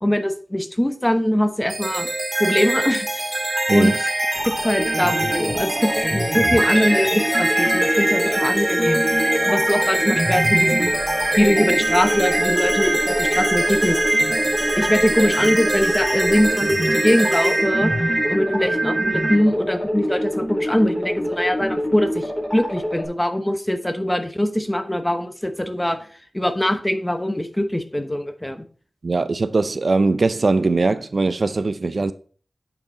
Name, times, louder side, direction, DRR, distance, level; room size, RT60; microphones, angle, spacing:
voice 1, 0.0-2.1 2.4-3.4 3.7-4.1 4.5-9.0 9.5-11.0 11.4-14.2 14.8-17.9 18.3-26.0 26.3-28.6, left 1 dB, 10° left, 1.0 m, -22 dB
sound 1, 1.7-19.4, right 1 dB, 30° right, 1.8 m, -22 dB
sound 2, 4.3-23.1, equal, 5° right, 5.0 m, -26 dB
voice 2, 29.0-32.1, right 3 dB, 60° right, 0.5 m, -20 dB
9.1 x 5.7 x 4.0 m
wide cardioid pair, 85°, 0 cm